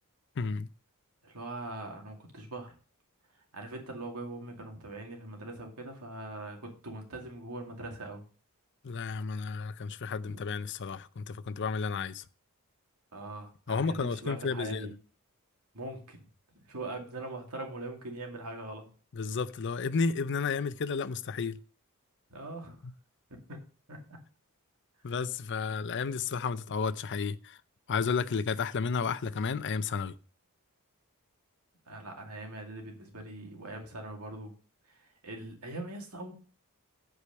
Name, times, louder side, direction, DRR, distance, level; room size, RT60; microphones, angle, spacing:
voice 1, 0.4-0.7 8.8-12.2 13.7-14.9 19.1-21.6 22.8-22.9 25.0-27.6 27.9-30.2, left 5 dB, 55° left, 0.5 m, -32 dB
voice 2, 1.2-2.8 3.5-8.2 10.2-10.4 13.1-14.9 15.7-16.2 16.5-18.9 22.3-22.8 23.3-23.6 23.9-24.2 31.9-34.6 34.9-36.3, right 2 dB, 85° right, 2.4 m, -42 dB
8.3 x 4.9 x 6.7 m
head